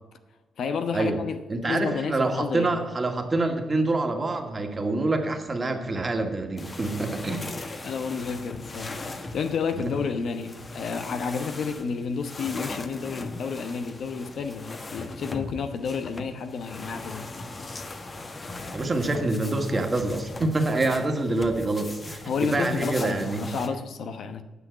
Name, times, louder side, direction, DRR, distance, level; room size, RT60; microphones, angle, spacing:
voice 1, 0.6-2.8 7.3-17.3 22.2-24.4, left 5 dB, 70° left, 0.9 m, -31 dB
voice 2, 1.5-7.4 18.7-23.5, right 2 dB, 30° right, 1.9 m, -26 dB
sound 1, 6.6-23.7, left 2 dB, 35° left, 1.3 m, -39 dB
9.4 x 6.0 x 8.1 m
supercardioid pair, 60°, 0 cm